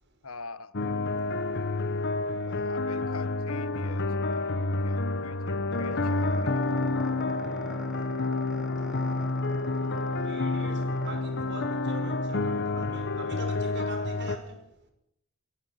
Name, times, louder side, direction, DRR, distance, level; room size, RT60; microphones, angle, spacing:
voice 1, 0.2-0.7 2.5-4.6 4.8-6.7, left 4 dB, 75° left, 1.2 m, -45 dB
sound 1, 0.7-14.4, left 2 dB, 50° left, 1.2 m, -29 dB
sound 2, 5.7-12.1, equal, 5° right, 2.5 m, -45 dB
voice 2, 6.4-6.7 7.2-8.1 9.2-9.9 10.2-14.9, right 2 dB, 55° right, 5.8 m, -44 dB
28.5 x 18.5 x 5.9 m
head